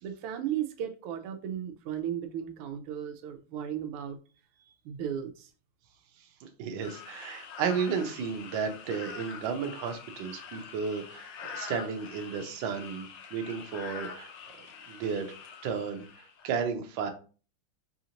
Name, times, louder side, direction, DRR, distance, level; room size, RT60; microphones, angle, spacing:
voice 1, 0.0-4.2 4.6-5.5, right 10 dB, 85° right, 1.5 m, -35 dB
voice 2, 6.4-14.3 14.9-15.3 15.6-17.1, right 6 dB, 70° right, 1.4 m, -33 dB
sound 1, 6.8-16.5, left 6 dB, 70° left, 1.3 m, -45 dB
4.9 x 2.5 x 2.8 m
omnidirectional pair, 2.4 m